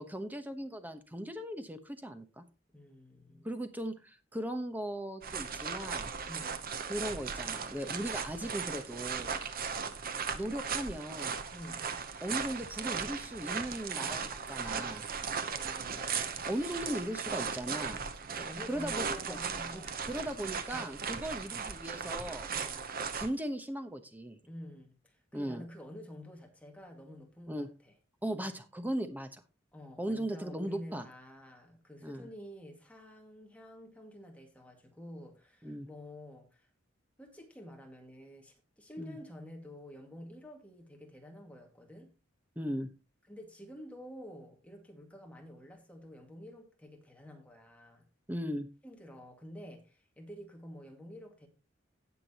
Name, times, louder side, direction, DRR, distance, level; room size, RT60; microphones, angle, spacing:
voice 1, 0.0-2.4 3.4-6.1 6.9-9.4 10.3-11.4 12.2-15.1 16.5-18.0 18.7-19.4 19.7-22.5 23.2-24.4 25.3-25.6 27.5-27.7 28.2-29.4 30.0-31.0 32.0-32.3 35.6-35.9 39.0-39.2 42.6-42.9 48.3-48.7, right 1 dB, 10° right, 1.0 m, -38 dB
voice 2, 2.7-3.5 6.3-6.6 11.5-11.9 15.1-16.5 18.3-20.2 20.7-20.9 21.5-21.6 22.5-22.9 24.4-27.9 29.7-36.7 37.2-42.1 43.3-48.0 48.8-51.5, equal, 5° left, 2.0 m, -49 dB
sound 1, 5.2-23.3, right 6 dB, 50° right, 0.9 m, -37 dB
17.5 x 6.1 x 2.9 m
head